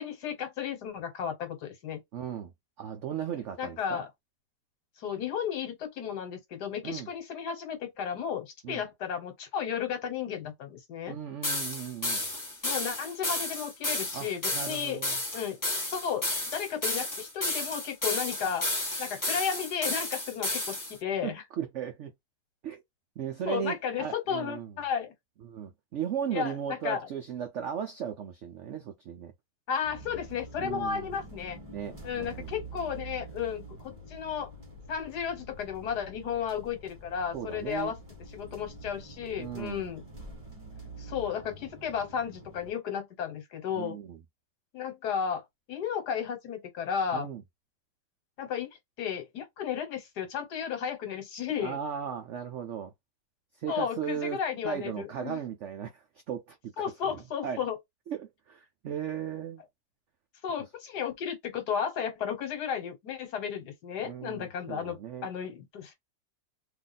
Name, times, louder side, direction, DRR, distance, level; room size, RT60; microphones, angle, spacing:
voice 1, 0.0-2.0 3.6-4.1 5.0-11.1 12.6-15.0 15.3-15.6 15.9-18.6 19.0-21.4 23.5-25.1 26.3-27.0 29.7-31.6 32.0-34.5 34.9-38.0 38.3-40.1 41.0-44.0 44.7-45.4 45.7-47.3 48.4-48.7 49.0-51.8 53.7-55.4 56.8-57.8 60.4-65.9, left 8 dB, 65° left, 1.6 m, -33 dB
voice 2, 2.1-2.5 2.8-4.0 6.8-7.1 8.6-8.8 11.1-12.3 14.1-15.2 21.2-22.1 22.6-22.8 23.2-24.8 25.4-29.3 30.6-31.1 31.7-32.5 37.3-37.9 39.4-39.9 43.7-44.2 47.1-47.4 51.6-52.9 53.5-56.7 57.0-57.6 58.1-59.6 64.0-65.3, right 9 dB, 80° right, 0.6 m, -36 dB
sound 1, 11.4-20.9, left 2 dB, 20° left, 0.6 m, -32 dB
sound 2, 29.8-42.7, right 2 dB, 20° right, 1.4 m, -46 dB
3.0 x 2.4 x 4.0 m
omnidirectional pair, 1.9 m